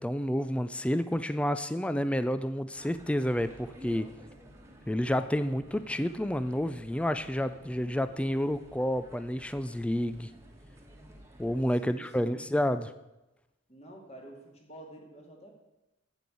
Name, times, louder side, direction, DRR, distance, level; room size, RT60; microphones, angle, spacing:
voice 1, 0.0-4.1 4.9-10.3 11.4-12.9, equal, 5° left, 12 dB, 0.4 m, -30 dB
sound 1, 2.7-11.6, equal, 15° right, 1.4 m, -52 dB
voice 2, 11.8-12.4 13.7-15.5, right 1 dB, 30° left, 1 dB, 2.3 m, -49 dB
9.0 x 7.8 x 8.4 m, 0.99 s
head